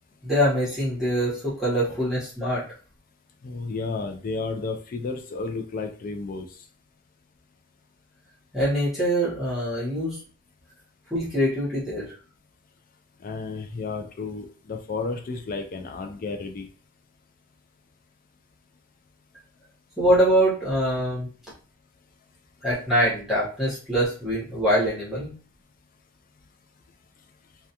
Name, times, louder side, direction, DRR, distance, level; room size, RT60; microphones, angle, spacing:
voice 1, 0.2-2.6 8.5-10.2 11.1-12.1 20.0-21.3 22.6-25.3, equal, ahead, -9 dB, 1.0 m, -24 dB
voice 2, 3.4-6.5 13.2-16.7, left 4 dB, 40° left, 4 dB, 0.4 m, -32 dB
2.3 x 2.3 x 2.8 m, 0.38 s
head